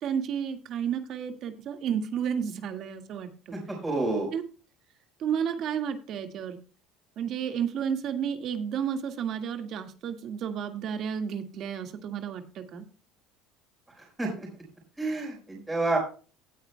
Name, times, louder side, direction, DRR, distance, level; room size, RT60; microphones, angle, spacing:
voice 1, 0.0-3.6 4.3-4.4 5.2-6.6 7.2-12.8, right 8 dB, 45° right, 7 dB, 1.8 m, -32 dB
voice 2, 3.5-4.3 14.0-14.5 15.0-16.0, right 2 dB, 10° right, -1 dB, 4.6 m, -29 dB
17.5 x 9.2 x 2.2 m, 0.36 s
cardioid pair, 140°, 0 cm